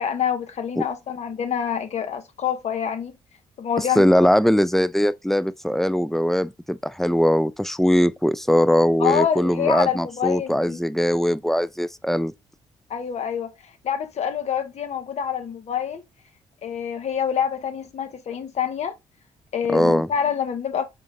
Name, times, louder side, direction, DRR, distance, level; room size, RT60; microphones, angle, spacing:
voice 1, 0.0-3.2 3.6-4.1 9.0-10.8 12.9-13.5 13.8-16.0 16.6-18.9 19.5-20.9, left 8 dB, 55° left, 0.8 m, -26 dB
voice 2, 3.8-12.3 19.7-20.1, equal, ahead, 0.3 m, -20 dB
3.8 x 3.8 x 2.6 m
supercardioid pair, 60°, 13 cm